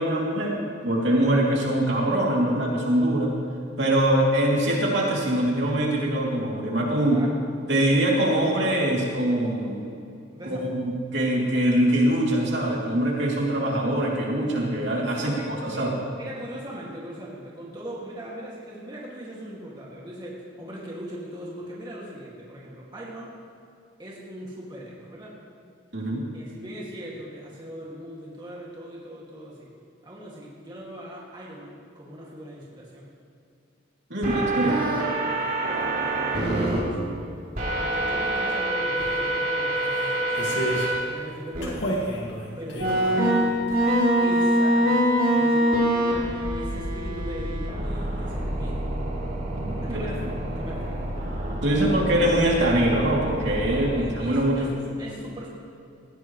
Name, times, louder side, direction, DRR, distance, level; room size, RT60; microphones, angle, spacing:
voice 1, 0.0-3.3 3.8-7.2 7.7-9.8 10.5-15.3 15.8-16.0 25.9-26.2 34.1-34.8 49.5-50.0 51.6-54.7, right 1 dB, 65° right, -3 dB, 3.0 m, -23 dB
voice 2, 7.1-7.4 10.3-10.9 15.1-15.9 16.2-23.3 24.0-25.4 26.3-29.7 30.0-33.1 34.2-34.4 35.2-37.2 37.7-42.1 42.6-43.6 44.2-45.1 45.3-49.0 49.8-51.0 51.6-51.9 53.7-55.5, right 1 dB, 25° right, -5 dB, 2.3 m, -40 dB
sound 1, 34.2-36.8 37.6-41.0 41.5-41.6 42.8-54.0, right 1 dB, 50° right, 3.5 m, -25 dB
sound 2, 39.0-39.1 39.8-40.9 41.6-43.8 44.2-44.7 45.0-45.1, equal, 65° left, 2.3 m, -32 dB
18.5 x 15.5 x 3.2 m, 2.6 s
head